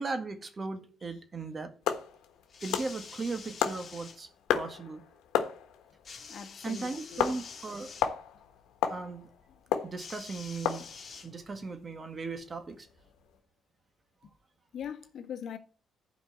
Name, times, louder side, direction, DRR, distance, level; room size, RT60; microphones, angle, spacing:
voice 1, 0.0-1.7 2.6-4.3 4.5-5.0 6.6-7.9 8.9-9.3 9.8-10.8 11.2-12.9, right 3 dB, 35° right, 1.8 m, -37 dB
sound 1, 1.8-13.4, left 9 dB, 90° left, 1.3 m, -35 dB
sound 2, 2.5-4.2 6.0-8.1 10.0-11.7 12.6-12.7, left 5 dB, 45° left, 2.1 m, -47 dB
voice 2, 6.3-7.3 14.7-15.6, left 8 dB, 65° left, 1.3 m, -41 dB
11.5 x 5.1 x 7.7 m
cardioid pair, 90°, 0 cm